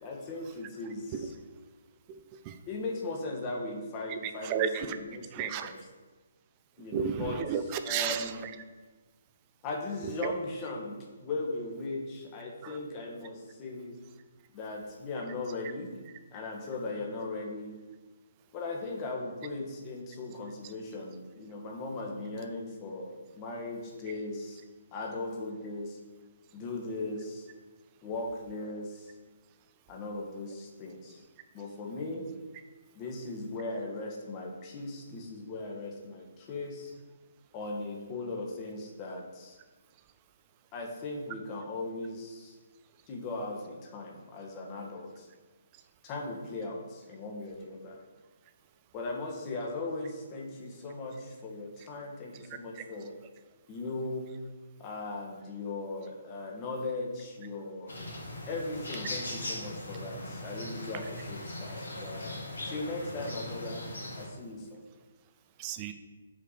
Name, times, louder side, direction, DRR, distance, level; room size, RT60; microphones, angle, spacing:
voice 1, 0.0-1.2 2.7-5.8 6.8-7.4 7.8-8.4 9.6-13.9 14.5-15.9 16.3-17.7 18.5-24.6 24.9-26.0 26.5-27.5 28.0-29.1 29.9-31.2 31.5-32.2 32.9-36.9 37.5-39.6 40.7-42.6 43.1-45.3 46.0-48.0 48.9-53.1 53.7-54.3 54.8-57.9 58.5-62.3 62.6-63.8 64.2-64.8, left 2 dB, 25° left, 0 dB, 1.3 m, -38 dB
voice 2, 4.1-5.0 5.3-5.7 6.9-8.5 10.0-10.3 12.6-12.8 65.6-65.9, right 8 dB, 25° right, 9 dB, 0.5 m, -32 dB
sound 1, 57.9-64.3, left 1 dB, 65° left, 1.9 m, -39 dB
5.7 x 4.8 x 6.5 m, 1.3 s
figure-of-eight pair, 135°, 0 cm